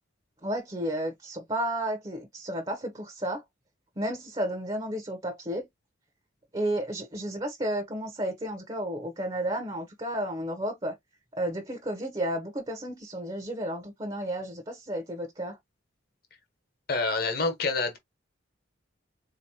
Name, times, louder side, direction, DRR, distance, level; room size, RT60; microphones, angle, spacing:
voice 1, 0.4-3.4 4.0-5.7 6.5-10.9 11.4-15.6, right 1 dB, 25° right, 0.7 m, -32 dB
voice 2, 16.9-18.0, left 3 dB, 50° left, 1.1 m, -27 dB
4.0 x 2.8 x 2.7 m
head